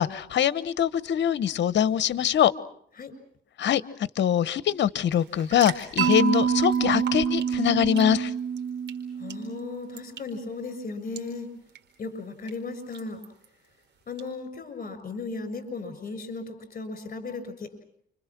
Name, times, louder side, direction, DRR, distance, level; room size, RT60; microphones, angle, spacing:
voice 1, 0.0-2.5 3.6-3.8 4.2-8.3, left 9 dB, 65° left, 16 dB, 1.1 m, -23 dB
sound 1, 5.1-14.3, right 7 dB, 60° right, 4.5 m, -44 dB
Mallet percussion, 6.0-10.0, right 7 dB, 85° right, 1.5 m, -27 dB
voice 2, 9.1-11.5 12.0-13.2 14.1-17.8, left 3 dB, 45° left, 11 dB, 6.5 m, -36 dB
29.5 x 25.5 x 6.1 m, 0.67 s
cardioid pair, 90°, 20 cm